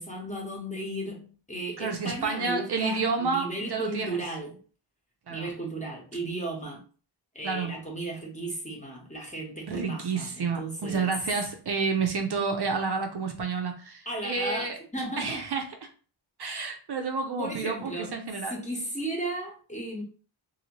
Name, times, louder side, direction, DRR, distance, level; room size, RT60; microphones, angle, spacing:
voice 1, 0.0-4.6 5.3-6.8 7.3-11.1 14.1-15.4 17.4-18.1 18.5-20.0, right 1 dB, 15° left, 0.9 m, -35 dB
voice 2, 1.8-4.2 5.3-5.5 7.4-7.7 9.7-14.8 15.2-15.7 16.4-18.6, right 4 dB, 55° right, 0.6 m, -30 dB
2.7 x 2.7 x 2.9 m
wide cardioid pair, 130°, 48 cm